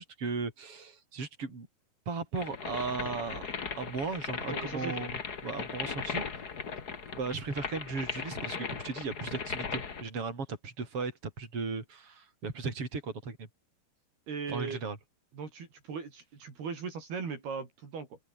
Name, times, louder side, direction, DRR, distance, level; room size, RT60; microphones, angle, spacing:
voice 1, 0.0-1.7 2.1-3.4 3.8-6.3 7.1-13.5 14.5-15.0, right 4 dB, 30° right, 6.6 m, -36 dB
sound 1, 2.3-10.0, left 6 dB, 50° left, 1.1 m, -38 dB
voice 2, 4.5-5.0 14.3-14.8 15.3-18.2, right 5 dB, 60° right, 6.7 m, -38 dB
open air
omnidirectional pair, 5.0 m